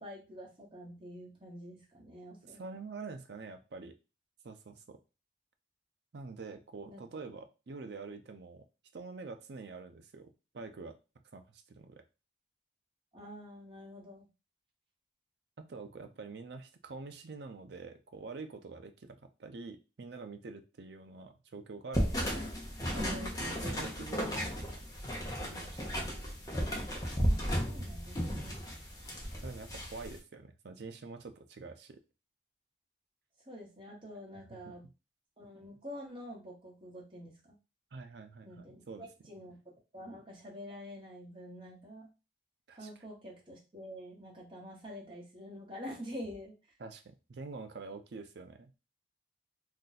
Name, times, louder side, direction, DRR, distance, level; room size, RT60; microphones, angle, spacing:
voice 1, 0.0-2.6 6.9-7.0 13.1-14.3 27.2-28.6 33.5-34.8 35.4-37.6 38.4-39.6 39.9-42.1 42.7-46.5, equal, 25° right, -3 dB, 1.0 m, -47 dB
voice 2, 2.4-3.9 4.4-5.0 6.1-8.7 8.9-11.0 11.3-12.0 15.6-22.4 22.9-24.8 25.4-25.9 29.4-32.0 37.9-39.1 42.7-42.9 46.8-48.7, right 4 dB, 65° right, 7 dB, 0.5 m, -46 dB
sound 1, 21.9-30.2, equal, 20° left, 0.7 m, -34 dB
2.6 x 2.3 x 3.9 m, 0.29 s
head